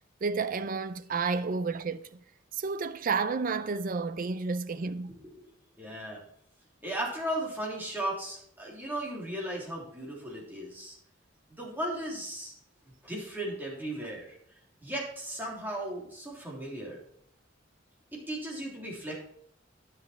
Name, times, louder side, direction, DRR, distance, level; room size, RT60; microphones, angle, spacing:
voice 1, 0.2-2.0 2.6-5.1, right 4 dB, 45° right, 0.5 m, -31 dB
voice 2, 5.1-5.5 5.8-6.2 6.8-11.0 11.5-12.5 13.0-14.4 14.8-17.0 18.1-19.2, right 1 dB, 10° right, 3.2 m, -36 dB
10.5 x 7.4 x 4.4 m
head